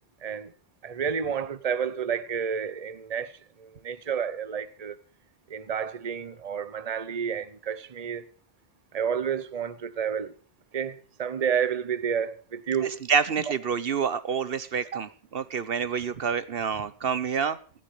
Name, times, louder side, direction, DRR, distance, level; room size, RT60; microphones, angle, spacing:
voice 1, 0.8-3.3 3.6-5.0 5.5-8.2 8.9-10.3 10.7-13.0 14.9-15.0, right 7 dB, 40° right, 1.0 m, -30 dB
voice 2, 12.8-17.6, right 6 dB, 65° right, 1.1 m, -28 dB
16.0 x 16.0 x 3.3 m
omnidirectional pair, 1.1 m